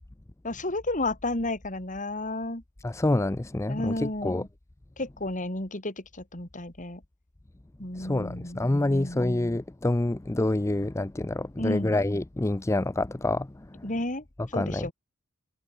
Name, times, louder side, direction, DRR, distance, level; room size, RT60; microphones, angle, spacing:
voice 1, 0.4-2.6 3.7-4.5 5.0-7.0 7.8-8.6 8.9-9.3 11.6-12.0 13.8-14.9, left 2 dB, 40° left, 4.2 m, -32 dB
voice 2, 2.8-4.4 8.0-13.9 14.5-14.9, left 2 dB, 15° left, 0.4 m, -27 dB
head